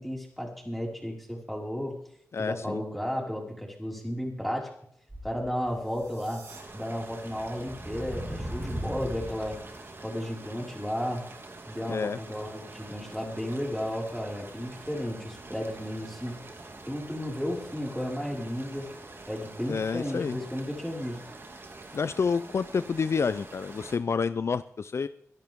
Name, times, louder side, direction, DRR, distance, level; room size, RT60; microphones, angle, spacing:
voice 1, 0.0-2.0 2.4-4.7 5.2-6.5 6.7-9.6 10.0-11.2 11.7-16.4 16.8-18.9 19.3-21.2, equal, ahead, -2 dB, 5.3 m, -33 dB
voice 2, 2.3-2.8 11.9-12.2 19.7-20.4 21.9-25.1, left 5 dB, 55° left, 14 dB, 0.5 m, -29 dB
sound 1, 5.1-6.1 6.6-6.7 7.3-9.8, equal, 15° right, 4.7 m, -38 dB
sound 2, 5.5-6.6, right 5 dB, 90° right, 2.9 m, -51 dB
sound 3, 6.5-24.0, right 2 dB, 45° right, 2.3 m, -46 dB
24.0 x 11.0 x 3.7 m, 0.69 s
cardioid pair, 60°, 5 cm